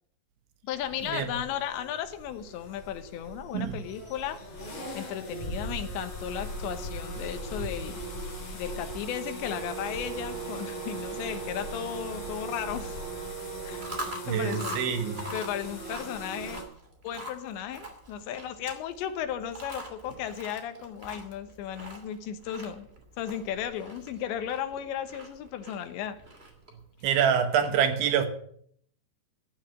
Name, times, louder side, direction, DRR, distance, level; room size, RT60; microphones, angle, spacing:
voice 1, 0.6-4.6 4.9-8.0 8.5-13.0 13.6-13.8 14.3-14.8 15.3-16.7 17.0-22.9 23.2-26.2, left 9 dB, 80° left, 3.3 m, -35 dB
sound 1, 0.7-16.6, right 1 dB, 35° left, 5.5 m, -39 dB
Wind instrument woodwind instrument, 9.4-14.1, right 11 dB, 45° right, 2.4 m, -41 dB
Chewing mastication, 13.6-26.8, equal, 20° right, 1.9 m, -44 dB
voice 2, 14.2-15.3 27.0-28.3, right 8 dB, 80° right, 3.9 m, -26 dB
14.5 x 9.1 x 7.8 m
omnidirectional pair, 5.3 m